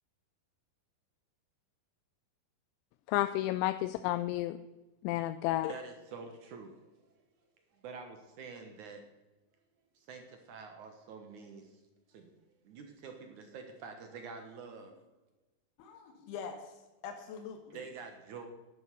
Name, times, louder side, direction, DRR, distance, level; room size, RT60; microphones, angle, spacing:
voice 1, 3.1-4.6 5.0-5.7, left 15 dB, 85° left, 11 dB, 2.9 m, -31 dB
voice 2, 5.7-6.8 7.7-9.1 10.0-11.8 12.1-12.3 12.6-15.0 17.7-18.5, right 5 dB, 70° right, 5 dB, 1.9 m, -47 dB
voice 3, 15.8-17.8, left 6 dB, 70° left, 4 dB, 2.9 m, -44 dB
11.0 x 10.5 x 6.7 m, 1.1 s
omnidirectional pair, 5.3 m